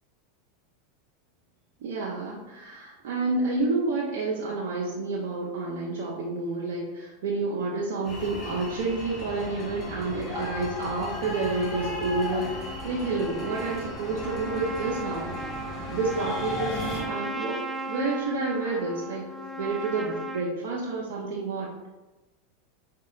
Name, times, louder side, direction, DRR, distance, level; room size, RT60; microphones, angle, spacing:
voice 1, 1.8-15.3 15.9-19.2 19.6-21.7, right 3 dB, 70° right, -3 dB, 0.6 m, -29 dB
sound 1, 8.0-17.0, left 2 dB, 30° left, 1.2 m, -36 dB
Trumpet, 12.4-20.5, right 1 dB, 10° right, 0.4 m, -36 dB
5.0 x 2.7 x 2.4 m, 1.1 s
hypercardioid pair, 95°, 0 cm